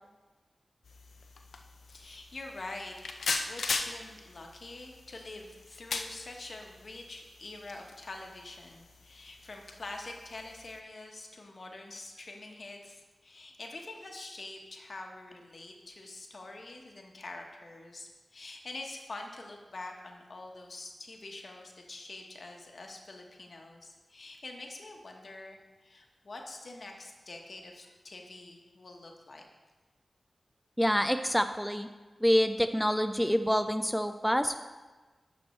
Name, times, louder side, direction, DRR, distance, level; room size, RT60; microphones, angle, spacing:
sound 1, 0.8-10.8, left 4 dB, 85° left, 0.5 m, -40 dB
voice 1, 1.9-3.0 3.4-29.5, left 2 dB, 60° left, 2 dB, 1.1 m, -45 dB
voice 2, 30.8-31.9 32.2-34.6, equal, ahead, 8 dB, 0.4 m, -27 dB
10.5 x 6.2 x 3.2 m, 1.3 s
cardioid pair, 50°, 0 cm